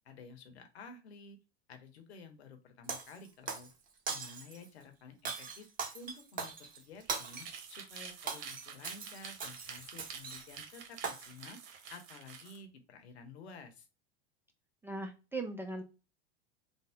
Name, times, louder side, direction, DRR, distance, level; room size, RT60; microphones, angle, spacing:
voice 1, 0.0-1.4 1.7-3.7 4.1-5.7 5.9-11.6 11.9-13.9, left 4 dB, 70° left, 6 dB, 0.9 m, -52 dB
Shatter, 2.9-3.7 4.1-4.7 5.3-7.6 8.0-10.6 11.0-11.5, right 5 dB, 25° right, 0.8 m, -40 dB
sound 1, 6.9-12.6, right 6 dB, 60° right, 0.9 m, -49 dB
voice 2, 14.8-15.8, right 2 dB, 5° right, 3 dB, 0.4 m, -39 dB
3.5 x 2.0 x 3.5 m, 0.30 s
figure-of-eight pair, 85°, 33 cm